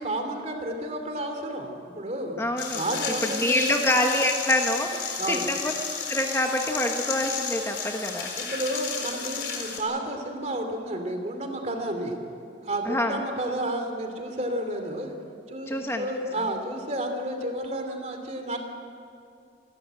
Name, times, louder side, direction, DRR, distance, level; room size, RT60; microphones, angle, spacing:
voice 1, 0.0-2.4 2.7-3.7 5.2-5.5 8.4-12.2 12.6-15.1 15.5-18.6, right 1 dB, 40° right, 5 dB, 2.8 m, -31 dB
voice 2, 2.4-2.8 3.3-5.7 6.1-8.3 12.8-13.2 15.7-16.1, left 1 dB, 15° left, 3 dB, 1.3 m, -26 dB
sound 1, 2.6-9.8, left 6 dB, 70° left, 4.1 m, -32 dB
26.5 x 13.5 x 9.0 m, 2.5 s
head